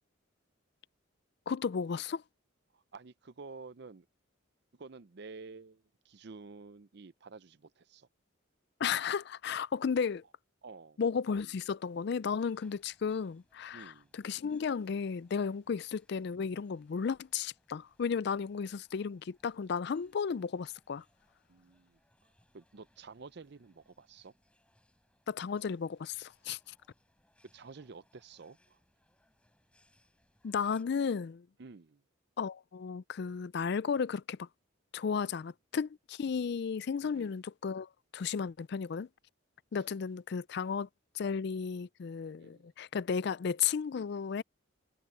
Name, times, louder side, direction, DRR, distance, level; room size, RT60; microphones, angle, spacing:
voice 1, 1.5-2.2 8.8-10.2 11.0-21.0 25.3-26.7 30.4-31.5 32.4-34.5 34.9-39.1 39.7-40.9 41.1-44.4, left 6 dB, 55° left, 0.4 m, -34 dB
voice 2, 2.7-4.1 4.7-8.1 10.6-11.0 13.7-14.1 15.7-15.8 21.5-22.0 22.5-24.3 27.5-28.8 31.6-32.0 35.2-35.3 37.0-37.3 40.6-40.7 42.4-42.7, right 4 dB, 55° right, 0.6 m, -51 dB
sound 1, 12.2-30.8, left 1 dB, 5° left, 4.3 m, -72 dB
head